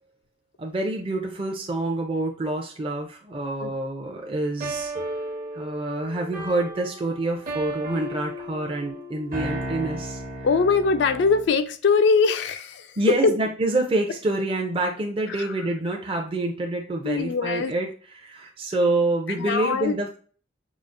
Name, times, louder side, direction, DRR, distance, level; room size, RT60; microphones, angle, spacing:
voice 1, 0.6-4.9 5.5-10.2 13.0-17.9 18.1-20.2, right 2 dB, 30° right, 1 dB, 0.5 m, -27 dB
sound 1, 4.6-11.6, right 1 dB, 50° right, 0.9 m, -34 dB
voice 2, 10.4-13.0 13.2-13.4 15.3-15.7 17.0-17.7 19.4-20.2, left 4 dB, 70° left, 9 dB, 0.3 m, -22 dB
4.9 x 2.4 x 2.5 m, 0.41 s
head